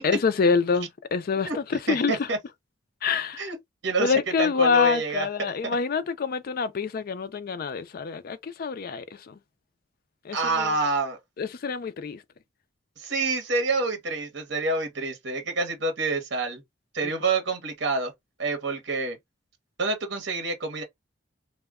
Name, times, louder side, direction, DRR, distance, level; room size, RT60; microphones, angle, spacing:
voice 1, 0.0-2.3 3.0-3.5 4.0-9.4 10.2-10.7 11.4-12.2, left 5 dB, 50° left, 0.4 m, -26 dB
voice 2, 1.9-2.4 3.4-3.6 3.8-5.8 10.3-11.2 13.0-16.6 16.9-18.1 18.4-19.2 19.8-20.8, right 3 dB, 60° right, 0.8 m, -27 dB
2.1 x 2.1 x 3.5 m
head